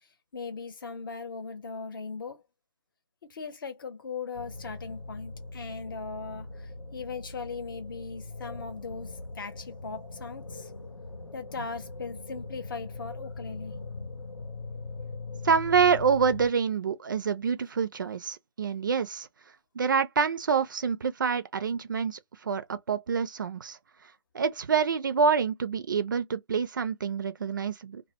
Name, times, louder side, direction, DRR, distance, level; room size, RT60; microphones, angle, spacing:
voice 1, 0.3-2.4 3.3-10.7 11.3-13.7, left 4 dB, 45° left, 0.8 m, -39 dB
sound 1, 4.3-16.5, left 3 dB, 90° left, 0.8 m, -41 dB
voice 2, 15.4-19.3 19.7-23.8 24.3-28.0, right 6 dB, 45° right, 0.4 m, -27 dB
2.1 x 2.1 x 2.8 m
figure-of-eight pair, 155°, 15 cm